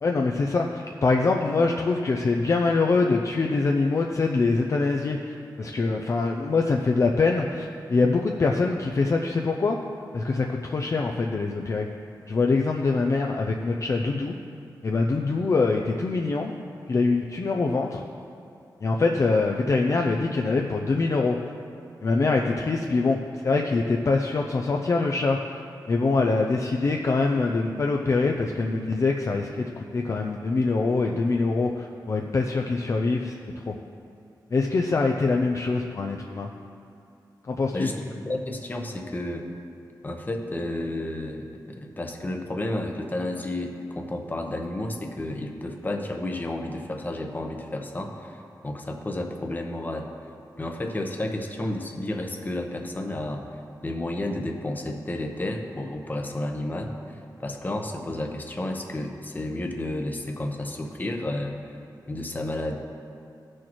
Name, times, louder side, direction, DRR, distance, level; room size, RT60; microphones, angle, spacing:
voice 1, 0.0-9.8 10.1-11.9 12.3-14.4 14.8-16.6 16.9-18.0 18.8-21.4 22.0-23.2 23.4-25.6 25.9-33.3 33.7-33.8 34.5-36.5 37.4-37.9, left 3 dB, 45° left, 1 dB, 0.5 m, -24 dB
voice 2, 37.7-39.5 40.0-50.1 50.6-53.5 53.8-61.5 62.1-62.8, left 1 dB, 25° left, 3 dB, 0.9 m, -31 dB
16.5 x 6.3 x 3.0 m, 2.6 s
wide cardioid pair, 115°, 8 cm